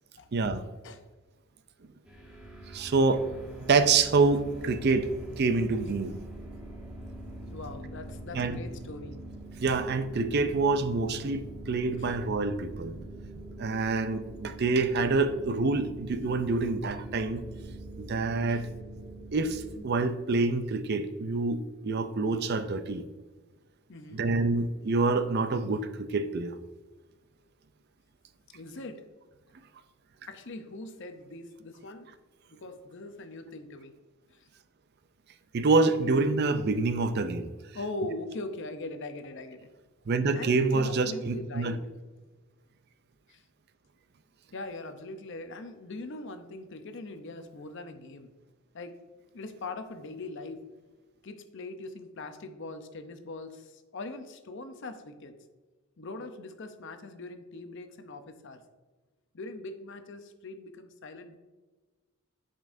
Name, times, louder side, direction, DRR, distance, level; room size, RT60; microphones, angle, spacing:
voice 1, 0.3-0.7 2.7-3.3 3.7-5.1 5.4-6.2 8.3-8.6 9.6-13.0 13.6-17.4 18.0-18.7 19.3-23.0 24.1-26.6 35.5-37.5 40.1-41.8, right 3 dB, 45° right, 10 dB, 0.4 m, -26 dB
sound 1, 2.1-19.8, right 1 dB, 5° right, 1.2 m, -44 dB
voice 2, 7.4-9.2 12.0-12.1 18.5-18.6 23.9-24.3 28.5-29.0 30.3-32.1 32.5-33.9 34.3-34.5 37.7-39.7 40.3-41.8 43.3-43.4 44.5-48.3 48.7-48.9 49.3-50.6 51.2-55.4 56.0-58.6 59.3-61.4, left 2 dB, 55° left, 8 dB, 0.6 m, -41 dB
10.5 x 5.3 x 2.6 m, 1.3 s
head